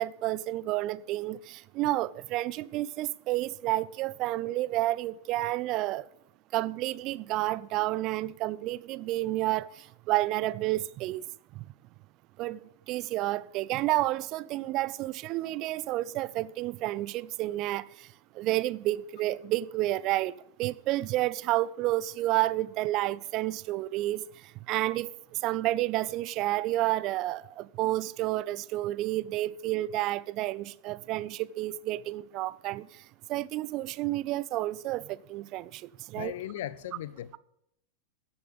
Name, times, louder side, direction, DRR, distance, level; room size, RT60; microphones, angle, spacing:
voice 1, 0.0-6.1 6.5-9.7 10.1-11.3 11.6-11.7 12.4-12.6 12.9-18.1 18.4-20.3 20.6-24.2 24.7-25.1 25.4-32.9 33.3-35.8 36.1-36.3, right 16 dB, 40° right, 0.5 m, -30 dB
voice 2, 36.1-37.4, left 12 dB, 55° left, 0.6 m, -37 dB
15.5 x 6.9 x 7.1 m
figure-of-eight pair, 90°, 0 cm